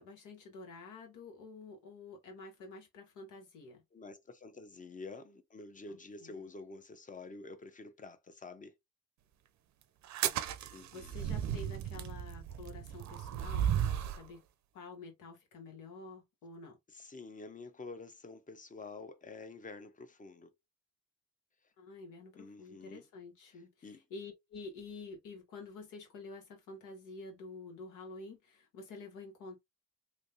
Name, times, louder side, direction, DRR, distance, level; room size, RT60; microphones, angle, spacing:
voice 1, 0.0-3.8 5.9-6.5 10.2-14.4 14.7-16.8 21.8-29.6, left 3 dB, 90° left, 1.5 m, -49 dB
voice 2, 3.9-8.7 10.7-11.2 16.9-20.5 22.4-23.1 23.5-24.0, left 3 dB, 25° left, 0.8 m, -49 dB
sound 1, 10.0-14.3, right 10 dB, 65° right, 0.5 m, -35 dB
3.3 x 2.7 x 2.7 m
cardioid pair, 90°, 30 cm